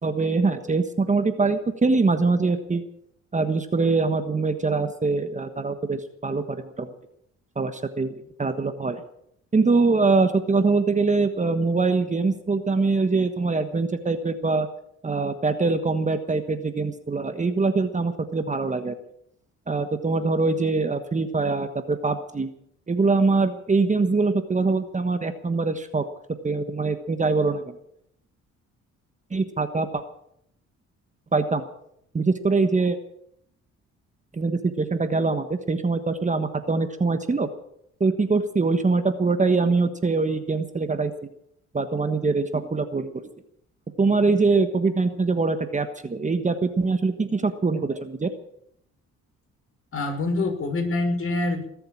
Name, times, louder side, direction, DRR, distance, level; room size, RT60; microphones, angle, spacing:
voice 1, 0.0-2.8 3.3-6.9 7.5-8.1 8.4-9.0 9.5-14.7 15.0-18.9 19.7-22.5 22.9-26.0 26.4-27.8 29.3-30.0 31.3-31.6 32.1-33.0 34.3-37.5 38.0-41.1 41.7-43.1 44.0-48.3, right 3 dB, 25° right, 9 dB, 1.3 m, -23 dB
voice 2, 49.9-51.6, left 2 dB, 45° left, 3 dB, 5.6 m, -25 dB
20.5 x 7.8 x 8.8 m, 0.71 s
cardioid pair, 90°, 30 cm